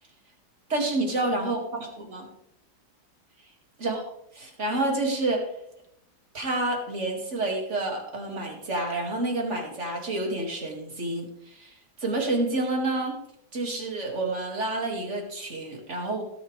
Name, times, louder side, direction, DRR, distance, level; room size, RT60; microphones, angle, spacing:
voice 1, 0.7-2.3 3.8-4.0 4.3-5.4 6.3-11.7 12.0-13.2 13.5-16.2, right 2 dB, 40° right, 1 dB, 2.5 m, -29 dB
17.0 x 7.7 x 3.3 m, 0.75 s
omnidirectional pair, 1.9 m